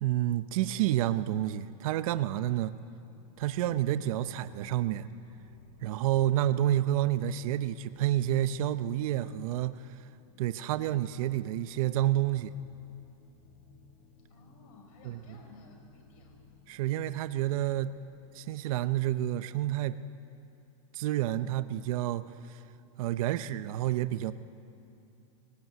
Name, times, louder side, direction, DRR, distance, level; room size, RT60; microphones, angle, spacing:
voice 1, 0.0-2.7 3.4-5.1 5.8-10.0 10.4-12.5 15.1-15.2 16.7-17.9 18.3-20.0 20.9-22.6 23.0-24.3, right 13 dB, 70° right, 13 dB, 0.7 m, -29 dB
sound 1, 3.3-18.0, left 4 dB, 85° left, 2.5 m, -58 dB
voice 2, 14.3-16.4, left 2 dB, 70° left, 2 dB, 5.1 m, -56 dB
19.0 x 18.0 x 9.3 m, 2.6 s
supercardioid pair, 145°, 19 cm